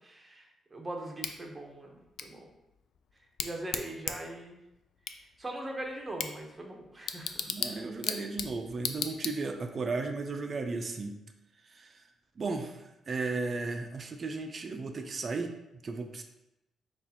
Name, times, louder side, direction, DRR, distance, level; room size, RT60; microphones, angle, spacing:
voice 1, 0.0-2.5 3.4-4.6 5.4-7.5, right 1 dB, 20° right, 1 dB, 0.8 m, -41 dB
Bicycle / Tick, 1.2-9.8, left 7 dB, 70° left, 0.3 m, -39 dB
voice 2, 7.5-11.2 11.6-12.0 12.4-15.5 15.8-16.2, right 3 dB, 40° right, 5 dB, 0.4 m, -35 dB
6.3 x 2.4 x 2.8 m, 0.89 s
cardioid pair, 105°, 0 cm